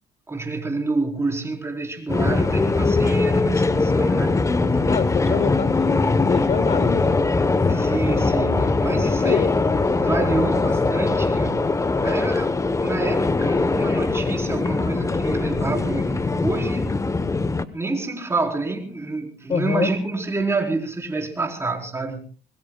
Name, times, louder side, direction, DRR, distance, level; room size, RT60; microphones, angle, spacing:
voice 1, 0.3-4.4 4.7-4.8 5.2-5.4 7.6-11.7 12.0-12.5 12.8-16.9 17.7-22.2, right 3 dB, 15° right, 4.4 m, -28 dB
sound 1, 2.1-17.7, left 3 dB, 20° left, 1.1 m, -21 dB
voice 2, 4.9-7.2 9.0-9.7 19.5-19.9, left 7 dB, 40° left, 1.0 m, -25 dB
25.0 x 22.0 x 2.4 m
cardioid pair, 110°, 17 cm